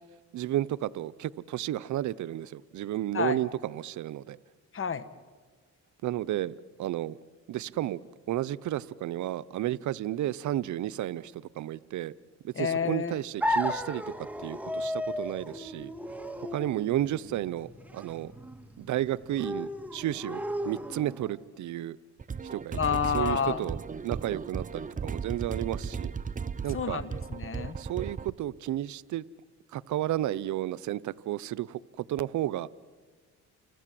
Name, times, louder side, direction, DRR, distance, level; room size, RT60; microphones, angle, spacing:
voice 1, 0.3-4.4 6.0-7.2 7.5-8.0 8.3-12.1 12.4-15.9 16.4-18.3 18.8-22.0 22.5-22.8 23.1-23.8 24.0-26.1 26.6-27.0 27.8-29.2 29.7-32.7, right 13 dB, 70° right, 18 dB, 0.7 m, -32 dB
voice 2, 4.7-5.0 12.5-13.2 22.7-23.7 26.7-27.8, left 6 dB, 45° left, 14 dB, 1.6 m, -29 dB
sound 1, 13.4-21.4, left 1 dB, 5° right, 1.9 m, -35 dB
sound 2, 22.2-28.3, right 5 dB, 25° right, 0.8 m, -36 dB
30.0 x 25.5 x 7.7 m, 1.5 s
cardioid pair, 90°, 30 cm